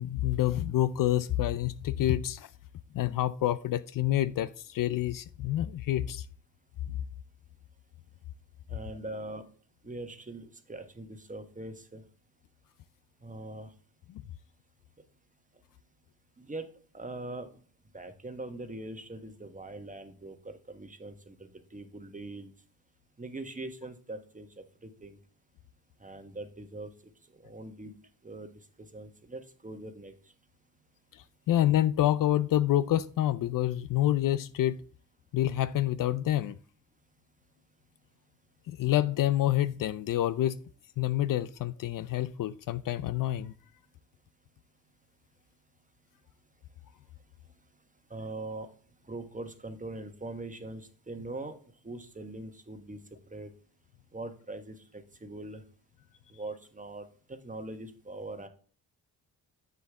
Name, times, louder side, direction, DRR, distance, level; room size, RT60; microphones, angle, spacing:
voice 1, 0.0-2.5 2.9-6.3 31.5-34.8 35.3-36.6 38.7-40.6 41.0-43.5, left 13 dB, 55° left, 0.5 m, -27 dB
voice 2, 8.7-9.4 9.8-12.0 13.2-13.7 16.4-16.7 16.9-17.5 17.9-22.5 23.2-24.5 24.8-25.2 26.0-26.9 27.4-27.9 28.2-28.5 28.9-30.1 48.1-48.7 49.1-51.6 51.8-53.0 53.3-53.5 54.1-55.6 56.3-58.5, right 2 dB, 20° right, 1.4 m, -42 dB
7.6 x 6.5 x 3.6 m
supercardioid pair, 55°, 40 cm